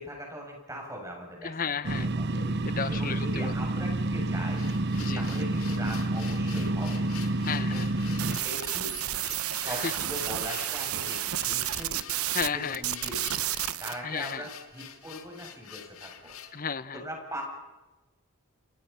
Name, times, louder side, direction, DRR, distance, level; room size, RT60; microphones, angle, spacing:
voice 1, 0.0-1.8 2.1-2.3 2.9-7.1 7.7-8.9 9.5-12.0 12.5-13.4 13.8-16.3 16.9-17.4, equal, 15° right, 0 dB, 7.8 m, -40 dB
voice 2, 1.4-3.5 5.0-5.2 7.5-7.9 9.7-9.9 10.6-10.7 12.3-12.8 14.0-14.5 16.5-17.0, left 6 dB, 40° left, 15 dB, 0.9 m, -33 dB
sound 1, 1.8-8.4, right 2 dB, 50° right, 0.9 m, -29 dB
sound 2, 4.5-16.6, left 9 dB, 70° left, 2.7 m, -47 dB
sound 3, 8.2-12.5 12.7-13.9, right 13 dB, 75° right, 0.9 m, -31 dB
30.0 x 28.0 x 5.7 m, 1.1 s
head